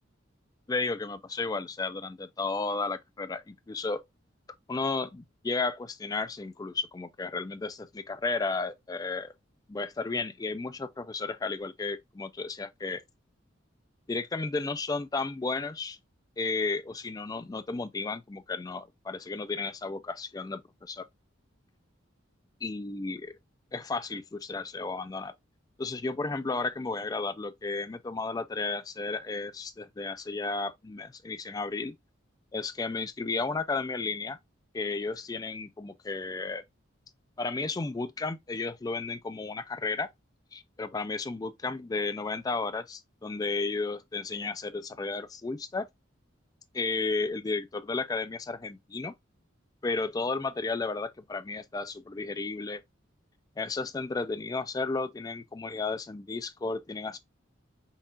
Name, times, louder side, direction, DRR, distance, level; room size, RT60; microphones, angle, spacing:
voice 1, 0.7-4.0 4.7-9.3 9.7-13.0 14.1-16.0 16.4-21.1 22.6-23.3 23.7-25.3 25.8-32.0 32.5-34.4 34.7-36.6 37.4-40.1 40.5-45.9 46.7-49.1 49.8-52.8 53.6-57.2, left 3 dB, 20° left, 0.3 m, -33 dB
5.5 x 2.4 x 2.5 m
head